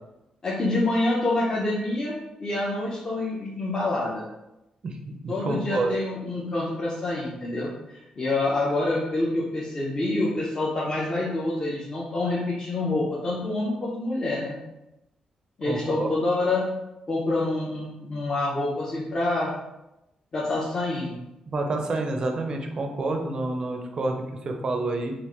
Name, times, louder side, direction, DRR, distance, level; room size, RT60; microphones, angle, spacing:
voice 1, 0.4-2.1 2.4-4.3 5.3-14.6 15.6-16.7 17.1-19.5 20.3-21.2, left 2 dB, 30° left, -6 dB, 0.6 m, -27 dB
voice 2, 5.2-5.9 15.6-16.1 21.5-25.1, right 2 dB, 35° right, 3 dB, 0.5 m, -28 dB
3.5 x 2.5 x 3.0 m, 0.92 s
wide cardioid pair, 155°, 2 cm